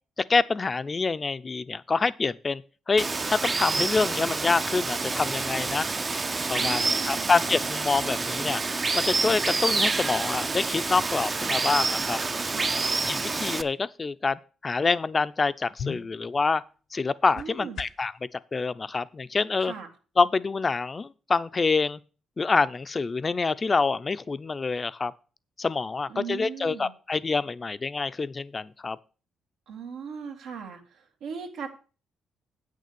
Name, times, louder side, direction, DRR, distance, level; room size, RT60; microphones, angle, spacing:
voice 1, 0.3-5.9 6.5-8.6 8.9-12.2 13.1-16.6 16.9-19.7 20.2-22.0 22.4-25.1 25.6-29.0, left 4 dB, 30° left, 0.5 m, -26 dB
Water, 3.0-13.6, right 3 dB, 30° right, 0.6 m, -28 dB
voice 2, 6.6-7.4 12.5-12.8 17.4-17.8 19.6-19.9 26.1-26.9 29.7-31.7, right 6 dB, 85° right, 1.9 m, -38 dB
sound 1, 15.7-18.2, left 7 dB, 70° left, 0.9 m, -41 dB
8.3 x 6.6 x 6.9 m
cardioid pair, 90°, 0 cm